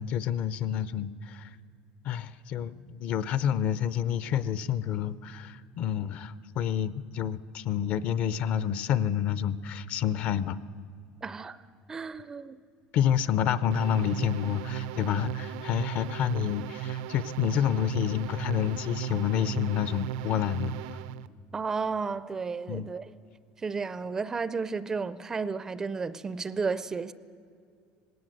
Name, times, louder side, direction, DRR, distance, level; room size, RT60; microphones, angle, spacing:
voice 1, 0.0-1.6 2.0-10.6 12.9-20.8 22.7-22.9, left 9 dB, 45° left, 0.5 m, -29 dB
voice 2, 11.2-11.6 11.9-12.6 21.5-23.0 23.6-27.1, right 4 dB, 15° right, 0.4 m, -32 dB
sound 1, 13.7-21.3, right 11 dB, 80° right, 0.6 m, -37 dB
19.5 x 17.5 x 7.9 m
cardioid pair, 170°, 3 cm